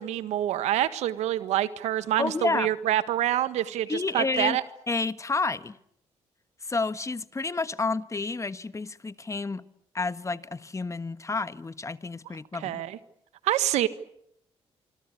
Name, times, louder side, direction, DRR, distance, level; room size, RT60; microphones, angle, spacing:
voice 1, 0.0-4.6 12.6-13.0 13.4-13.9, right 12 dB, 85° right, 1.6 m, -26 dB
voice 2, 2.2-2.7 3.9-4.6 4.9-5.8 6.6-9.6 9.9-12.8, left 3 dB, 25° left, 1.4 m, -30 dB
26.0 x 25.5 x 8.5 m
supercardioid pair, 65°, 11 cm